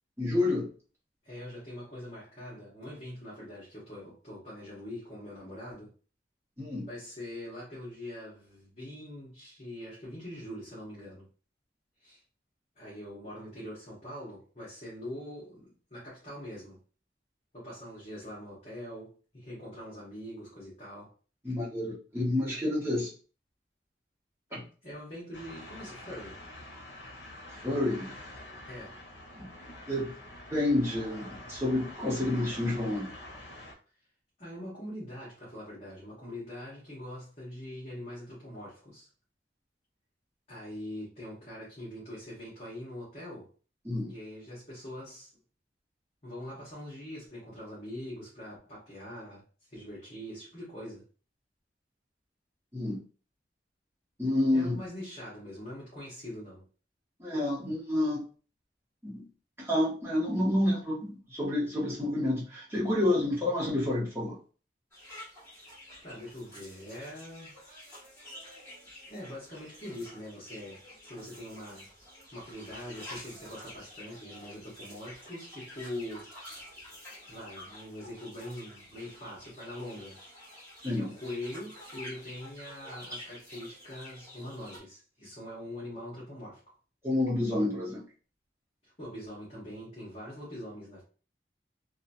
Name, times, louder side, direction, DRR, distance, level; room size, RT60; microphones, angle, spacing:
voice 1, 0.2-0.7 6.6-6.9 21.4-23.1 24.5-24.7 27.5-28.1 29.3-29.5 29.9-30.2 30.5-33.1 43.8-44.1 52.7-53.0 54.2-54.8 57.2-58.2 59.0-59.3 59.6-64.4 80.8-81.1 87.0-88.0, left 1 dB, 15° right, 1.0 m, -29 dB
voice 2, 1.2-5.9 6.9-11.3 12.0-12.2 12.8-16.8 17.5-21.1 24.8-26.4 28.7-29.0 34.4-39.1 40.5-43.5 44.1-45.3 46.2-49.4 49.7-51.0 54.5-56.6 65.5-65.7 66.0-67.6 69.1-71.9 72.3-76.3 77.3-80.2 81.0-86.7 88.8-91.0, left 1 dB, 35° left, 1.0 m, -43 dB
sound 1, 25.3-33.7, left 1 dB, 85° left, 0.7 m, -46 dB
sound 2, 64.9-84.8, left 1 dB, 10° left, 1.4 m, -49 dB
2.8 x 2.3 x 2.6 m
head